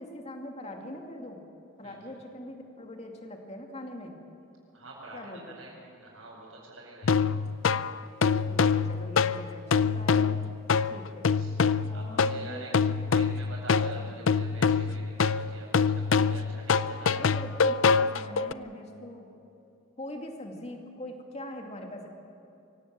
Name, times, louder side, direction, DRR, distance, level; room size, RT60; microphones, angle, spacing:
voice 1, 0.0-1.4 1.8-4.2 5.1-5.6 8.3-10.4 10.9-11.3 11.9-13.6 14.0-14.3 17.1-19.3 20.0-22.1, left 1 dB, 35° left, 2 dB, 2.5 m, -42 dB
voice 2, 1.8-2.1 4.7-7.2 10.7-11.0 11.3-11.5 11.9-12.7 13.0-17.3, right 2 dB, 85° right, -8 dB, 6.2 m, -46 dB
sound 1, 7.0-18.5, left 5 dB, 75° left, 0.5 m, -25 dB
24.5 x 17.5 x 7.7 m, 2.8 s
head